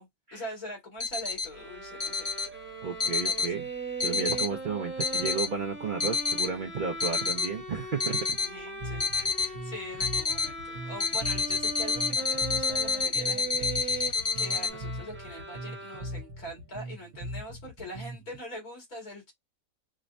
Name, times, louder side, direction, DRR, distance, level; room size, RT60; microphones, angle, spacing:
voice 1, 0.0-2.3 3.2-3.5 4.1-4.4 8.4-9.1 9.4-19.3, equal, 85° left, 2.7 m, -43 dB
sound 1, 1.0-1.5 2.0-2.5 3.0-3.5 4.0-4.5 5.0-5.5 6.0-6.5 7.0-7.5 8.0-8.5 9.0-9.5 10.0-10.5 11.0-14.7, left 5 dB, 40° left, 0.5 m, -29 dB
sound 2, 1.5-16.5, right 3 dB, 10° right, 0.6 m, -39 dB
voice 2, 2.8-3.7 4.0-8.4 9.1-9.5, right 5 dB, 55° right, 0.5 m, -33 dB
Bass guitar, 8.8-18.4, equal, 75° right, 1.2 m, -40 dB
5.0 x 2.1 x 2.5 m
omnidirectional pair, 1.5 m